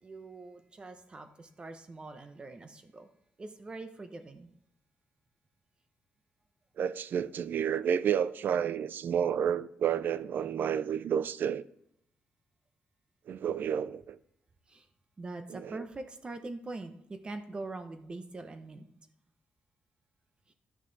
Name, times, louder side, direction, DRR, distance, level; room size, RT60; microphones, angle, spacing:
voice 1, 0.0-3.1 3.4-4.5 14.7-14.9 15.2-18.9, right 2 dB, 25° right, 0.9 m, -43 dB
voice 2, 6.8-11.6 13.3-14.2 15.5-15.8, right 8 dB, 55° right, 0.4 m, -30 dB
12.5 x 6.2 x 4.0 m
wide cardioid pair, 150°, 4 cm